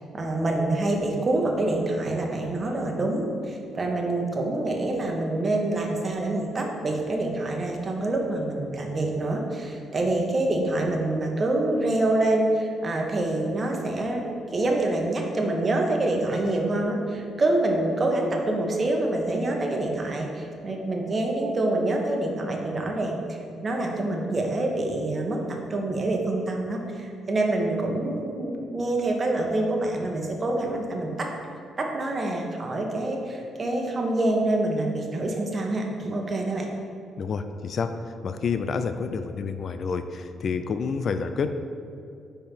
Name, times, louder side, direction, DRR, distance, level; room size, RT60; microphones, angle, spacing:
voice 1, 0.1-14.2 14.5-31.3 31.8-36.7, right 2 dB, 35° right, 1 dB, 1.1 m, -26 dB
voice 2, 37.2-41.5, left 5 dB, 55° left, 9 dB, 0.3 m, -29 dB
5.3 x 4.4 x 5.9 m, 2.6 s
cardioid pair, 90°, 0 cm